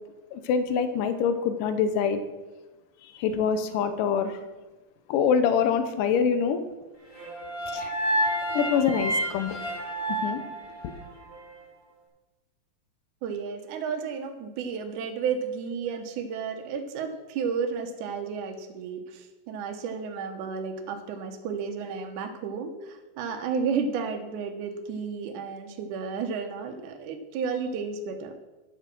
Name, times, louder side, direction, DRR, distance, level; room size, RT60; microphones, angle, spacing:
voice 1, 0.3-2.2 3.0-4.4 5.1-6.6 7.7-7.9 8.5-9.6 10.1-10.4 10.8-10.9, left 6 dB, 75° left, 10 dB, 2.4 m, -25 dB
sound 1, 7.1-11.4, equal, 30° left, 3.7 m, -30 dB
voice 2, 13.2-28.3, right 6 dB, 70° right, 5 dB, 2.4 m, -32 dB
11.0 x 8.1 x 6.1 m, 1.1 s
omnidirectional pair, 4.1 m